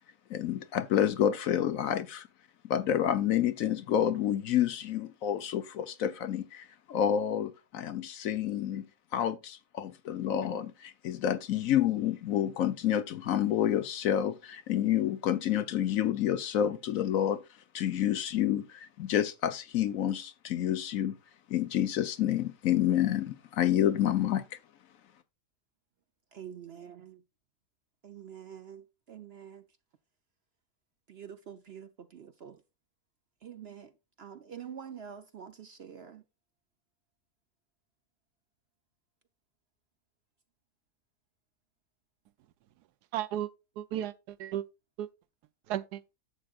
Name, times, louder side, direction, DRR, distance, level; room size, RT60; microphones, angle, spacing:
voice 1, 0.3-2.3 2.6-8.9 9.1-17.4 17.7-21.2 21.5-24.6, left 10 dB, 65° left, 1.0 m, -29 dB
voice 2, 26.3-27.2 28.0-29.7 31.1-32.6 33.4-33.9 34.2-36.2, right 8 dB, 55° right, 0.7 m, -46 dB
voice 3, 43.1-43.5 43.8-44.6 45.0-45.1 45.7-46.2, right 12 dB, 85° right, 1.2 m, -34 dB
11.5 x 7.6 x 2.4 m
omnidirectional pair, 1.7 m